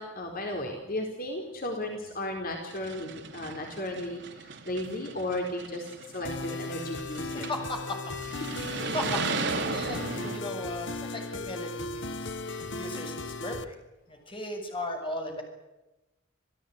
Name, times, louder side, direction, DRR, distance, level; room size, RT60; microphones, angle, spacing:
voice 1, 0.0-7.5, left 1 dB, 45° left, 2 dB, 4.4 m, -35 dB
sound 1, 1.9-2.0 2.6-7.7 8.2-10.4, right 4 dB, 60° right, 3.1 m, -36 dB
sound 2, 6.3-13.6, left 3 dB, 65° left, 1.5 m, -36 dB
voice 2, 7.3-8.0 8.9-13.8 14.1-15.4, left 1 dB, 25° left, 4 dB, 7.1 m, -37 dB
28.5 x 17.0 x 9.7 m, 1.0 s
head